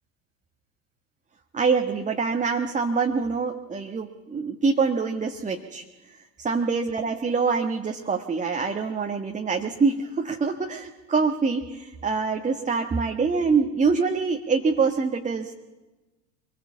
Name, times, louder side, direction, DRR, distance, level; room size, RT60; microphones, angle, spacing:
voice 1, 1.5-5.8 6.4-15.5, right 4 dB, 15° right, 3 dB, 1.5 m, -25 dB
24.5 x 21.0 x 7.2 m, 1.1 s
figure-of-eight pair, 75°, 47 cm